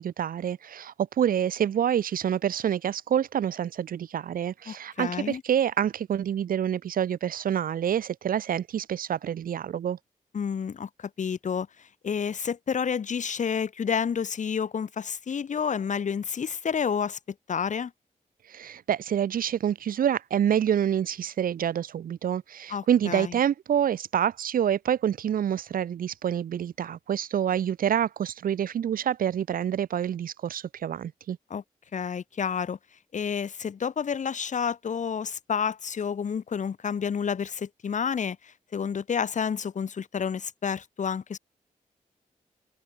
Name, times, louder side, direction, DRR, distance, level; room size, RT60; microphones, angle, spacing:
voice 1, 0.0-10.0 18.5-31.4, right 9 dB, 75° right, 0.6 m, -27 dB
voice 2, 4.7-5.4 10.3-11.7 12.0-17.2 17.5-17.9 22.7-23.4 31.5-31.6 31.9-32.8 33.1-41.4, left 7 dB, 60° left, 0.8 m, -30 dB
open air
cardioid pair, 80°, 15 cm